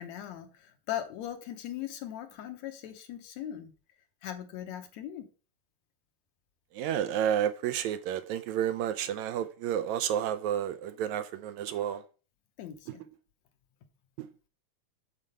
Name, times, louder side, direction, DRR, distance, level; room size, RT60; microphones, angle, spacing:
voice 1, 0.0-3.7 4.2-5.3 12.6-13.0, left 11 dB, 70° left, 2.0 m, -39 dB
voice 2, 6.8-12.0 14.2-14.3, right 10 dB, 75° right, 1.8 m, -31 dB
7.5 x 4.5 x 6.6 m
omnidirectional pair, 3.5 m